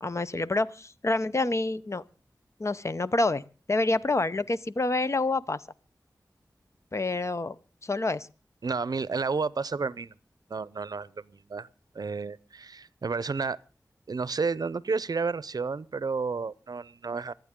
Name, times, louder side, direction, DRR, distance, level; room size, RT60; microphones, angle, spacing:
voice 1, 0.0-2.0 2.6-5.7 6.9-7.6 7.8-8.3, left 2 dB, 45° left, 0.7 m, -27 dB
voice 2, 8.6-10.1 10.5-11.7 11.9-13.6 14.1-17.3, right 4 dB, 65° right, 0.6 m, -31 dB
26.0 x 9.1 x 3.7 m
wide cardioid pair, 60°, 7 cm